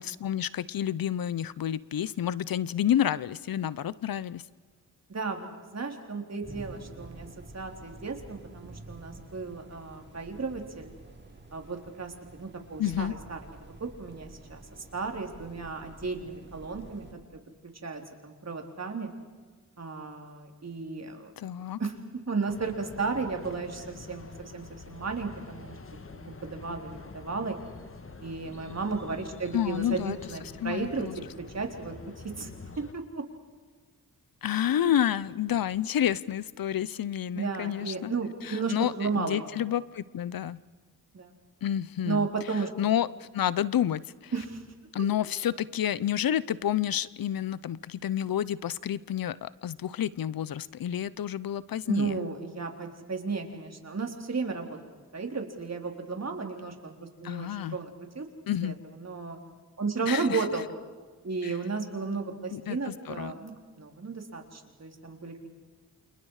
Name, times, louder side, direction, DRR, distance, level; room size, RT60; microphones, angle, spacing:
voice 1, 0.0-4.4 12.8-13.1 21.4-21.8 29.5-30.2 30.6-31.1 34.4-38.1 38.4-40.6 41.6-42.3 42.8-44.3 44.9-52.2 57.2-57.8 58.5-58.8 60.1-60.4 61.4-61.5 62.5-63.3, left 10 dB, 75° left, 19 dB, 0.8 m, -29 dB
voice 2, 5.1-5.5 5.7-7.3 7.5-10.9 11.5-13.4 13.8-14.6 14.9-17.1 17.6-19.1 19.8-21.3 21.8-21.9 22.3-27.6 28.2-31.1 31.5-31.9 32.2-32.5 32.8-33.2 37.3-39.4 41.1-41.3 42.0-42.7 44.3-44.6 51.8-54.8 55.1-56.9 57.2-58.3 58.6-59.4 59.8-60.7 61.2-63.5 63.8-65.5, right 4 dB, 45° right, 3 dB, 4.0 m, -34 dB
sound 1, 6.4-17.1, right 2 dB, 30° right, 4.6 m, -49 dB
sound 2, 22.5-32.9, left 4 dB, 35° left, 1.6 m, -46 dB
29.0 x 28.0 x 4.9 m, 1.4 s
cardioid pair, 65°, 35 cm